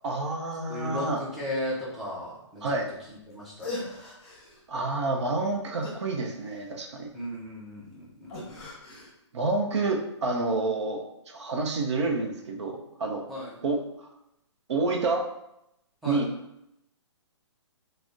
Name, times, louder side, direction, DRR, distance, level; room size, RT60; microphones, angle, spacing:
voice 1, 0.0-1.2 2.6-2.9 4.7-7.1 9.3-13.2 13.6-13.8 14.7-15.3 16.0-16.3, right 3 dB, 65° right, 2 dB, 0.5 m, -28 dB
voice 2, 0.7-2.6 3.3-3.9 7.1-8.6 13.3-13.5 16.0-16.2, equal, ahead, -7 dB, 0.4 m, -36 dB
sound 1, 3.3-3.4 3.6-4.6 5.8-6.9 8.3-9.1, left 2 dB, 20° left, 0.8 m, -39 dB
2.5 x 2.0 x 3.4 m, 0.83 s
hypercardioid pair, 155°, 16 cm